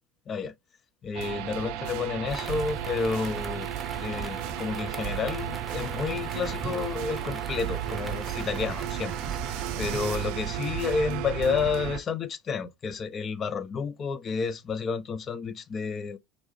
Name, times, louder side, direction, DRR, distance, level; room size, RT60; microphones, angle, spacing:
voice 1, 1.0-3.7 4.0-9.1 9.8-16.2, left 5 dB, 35° left, 0.5 m, -30 dB
sound 1, 1.1-12.0, right 12 dB, 60° right, 0.3 m, -34 dB
sound 2, 2.3-10.3, right 3 dB, 10° right, 0.9 m, -39 dB
4.6 x 2.6 x 3.0 m
figure-of-eight pair, 70°, 0 cm